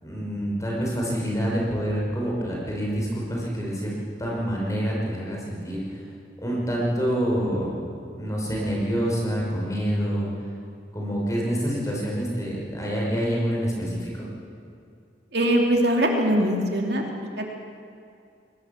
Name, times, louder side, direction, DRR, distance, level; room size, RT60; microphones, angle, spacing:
voice 1, 0.0-3.9 4.2-6.0 6.4-7.7 8.1-10.3 10.9-14.3, equal, 20° left, -3 dB, 5.9 m, -27 dB
voice 2, 15.3-17.0 17.4-17.5, right 1 dB, 65° right, 1 dB, 2.8 m, -22 dB
22.0 x 19.0 x 7.3 m, 2.5 s
head